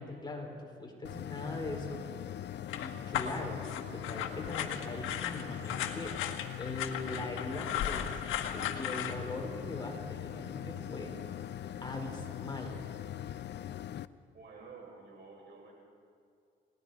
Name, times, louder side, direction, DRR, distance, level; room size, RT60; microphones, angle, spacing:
voice 1, 0.0-2.0 2.8-6.2 6.6-11.1 11.8-12.9, left 2 dB, 20° left, 1 dB, 4.2 m, -41 dB
sound 1, 1.0-14.1, left 11 dB, 60° left, 0.6 m, -42 dB
sound 2, 2.7-9.1, left 10 dB, 85° left, 1.5 m, -36 dB
voice 2, 14.3-15.7, right 4 dB, 60° right, -1 dB, 7.0 m, -50 dB
30.0 x 19.0 x 4.8 m, 2.4 s
cardioid pair, 90°, 20 cm